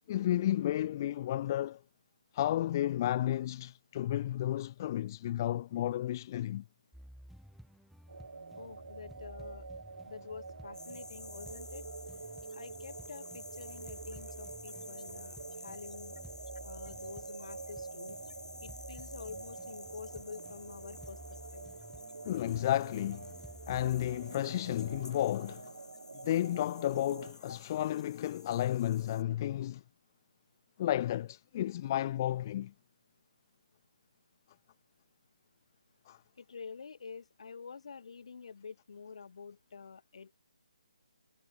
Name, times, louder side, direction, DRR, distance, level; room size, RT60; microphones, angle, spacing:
voice 1, 0.1-1.8 2.3-6.6 22.2-23.3 23.7-25.7 26.2-29.8 30.8-32.7 36.1-36.2, left 12 dB, 30° left, 0.5 m, -32 dB
sound 1, 6.9-25.1, equal, ahead, 3.7 m, -54 dB
sound 2, 8.1-27.3, right 4 dB, 70° right, 1.2 m, -47 dB
voice 2, 8.6-9.7 10.0-11.9 12.5-16.2 16.6-18.2 18.6-21.7 27.5-27.6 36.4-40.3, left 5 dB, 55° left, 7.7 m, -48 dB
sound 3, 10.7-29.2, left 2 dB, 80° left, 2.8 m, -52 dB
figure-of-eight pair, 145°, 4 cm